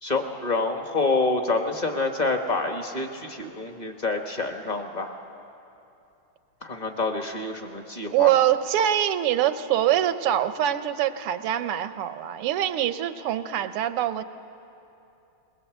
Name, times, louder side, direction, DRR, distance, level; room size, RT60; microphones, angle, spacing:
voice 1, 0.0-5.1 6.6-8.3, left 3 dB, 25° left, 4 dB, 1.2 m, -27 dB
voice 2, 8.1-14.2, right 11 dB, 85° right, 11 dB, 1.7 m, -24 dB
21.5 x 20.5 x 8.0 m, 2.8 s
omnidirectional pair, 2.4 m